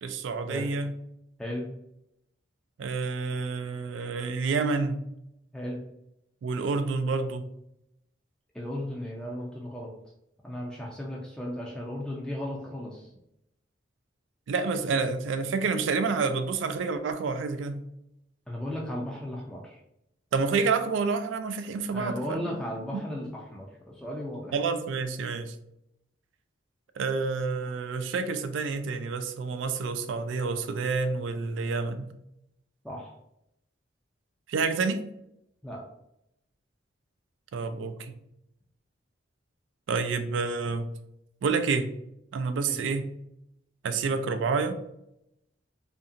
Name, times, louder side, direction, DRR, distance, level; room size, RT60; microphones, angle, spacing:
voice 1, 0.0-0.9 2.8-5.0 6.4-7.5 14.5-17.8 20.3-22.6 22.9-23.0 24.5-25.6 27.0-32.1 34.5-35.0 37.5-38.1 39.9-40.9 41.4-41.9 42.3-43.1 43.8-44.8, right 4 dB, 80° right, 9 dB, 0.3 m, -28 dB
voice 2, 1.4-1.7 5.5-5.8 8.5-9.9 10.4-13.1 18.5-19.8 21.9-24.5 32.8-33.1 35.6-35.8 42.7-42.8, left 1 dB, 5° left, -3 dB, 0.3 m, -35 dB
2.7 x 2.6 x 2.5 m, 0.83 s
head